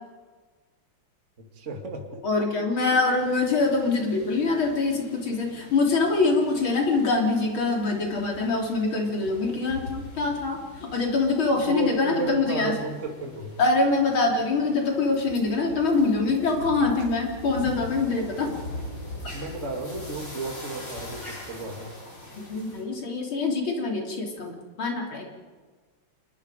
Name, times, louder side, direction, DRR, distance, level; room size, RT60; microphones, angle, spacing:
voice 1, 1.4-2.5 11.7-13.6 19.3-21.9, right 2 dB, 35° right, 2 dB, 2.5 m, -33 dB
voice 2, 2.2-12.7 13.6-18.5 22.4-24.5 24.8-25.3, left 3 dB, 75° left, 0 dB, 4.1 m, -24 dB
sound 1, 3.1-22.8, left 1 dB, 60° left, 8.3 m, -42 dB
28.5 x 20.0 x 5.1 m, 1.4 s
omnidirectional pair, 2.3 m